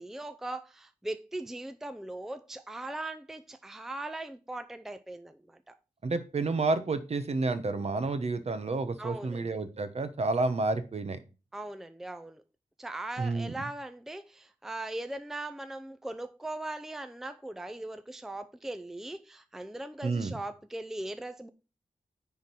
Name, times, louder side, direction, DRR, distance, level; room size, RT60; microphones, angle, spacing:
voice 1, 0.0-5.8 9.0-9.6 11.5-12.4 12.8-21.5, right 2 dB, 5° right, 0.5 m, -39 dB
voice 2, 6.0-11.2 13.2-13.5 20.0-20.3, right 3 dB, 50° right, 1.0 m, -30 dB
9.7 x 3.7 x 6.1 m
wide cardioid pair, 140°, 13 cm